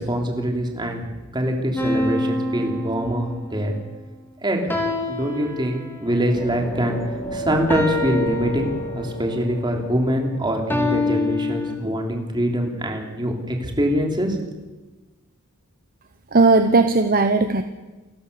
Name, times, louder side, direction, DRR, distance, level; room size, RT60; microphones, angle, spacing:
voice 1, 0.0-3.7 4.4-4.6 5.1-7.0 7.3-14.5, equal, 20° right, 2 dB, 3.2 m, -24 dB
sound 1, 1.8-3.6 4.7-6.2 7.7-9.2 10.7-11.8, left 2 dB, 10° left, 2.9 m, -26 dB
sound 2, 6.3-10.9, right 1 dB, 30° left, 3.6 m, -33 dB
voice 2, 16.3-17.6, right 3 dB, 40° right, 8 dB, 0.9 m, -16 dB
29.0 x 14.0 x 6.9 m, 1.2 s
head